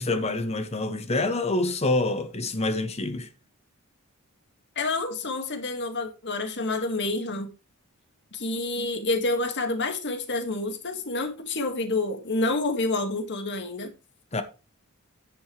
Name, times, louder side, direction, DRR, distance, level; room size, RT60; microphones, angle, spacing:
voice 1, 0.0-3.3 14.3-14.4, left 2 dB, 30° left, 1.1 m, -26 dB
voice 2, 4.8-7.5 8.3-13.9, left 2 dB, 55° left, 2.0 m, -28 dB
10.5 x 9.8 x 3.3 m
head